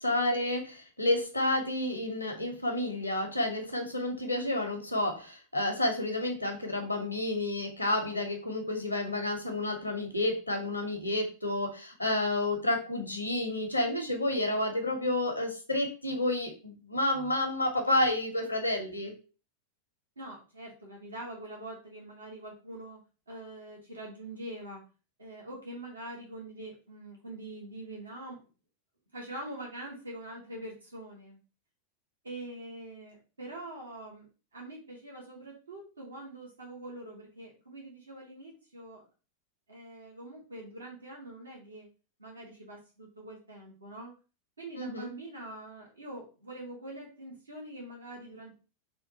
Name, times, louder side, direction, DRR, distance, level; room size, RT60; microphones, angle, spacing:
voice 1, 0.0-19.1 44.8-45.1, left 1 dB, 85° left, 4 dB, 0.7 m, -30 dB
voice 2, 20.2-23.0 23.3-24.8 25.2-28.4 29.1-31.4 32.2-39.0 39.7-41.9 42.2-44.1 44.6-48.5, right 1 dB, 75° right, -1 dB, 0.8 m, -44 dB
3.5 x 2.3 x 2.7 m, 0.34 s
figure-of-eight pair, 90°, 0 cm